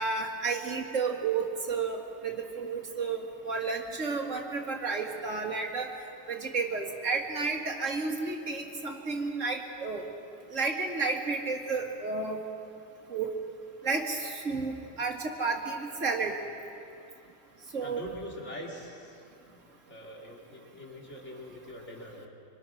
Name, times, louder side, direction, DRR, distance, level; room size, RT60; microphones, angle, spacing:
voice 1, 0.0-5.9 6.3-10.0 10.5-12.4 13.1-13.3 13.8-16.3 17.7-18.0, right 4 dB, 70° right, 1 dB, 2.5 m, -31 dB
voice 2, 17.8-19.2 19.9-22.3, left 1 dB, 60° left, -1 dB, 3.1 m, -43 dB
26.0 x 24.5 x 6.4 m, 2.6 s
omnidirectional pair, 1.4 m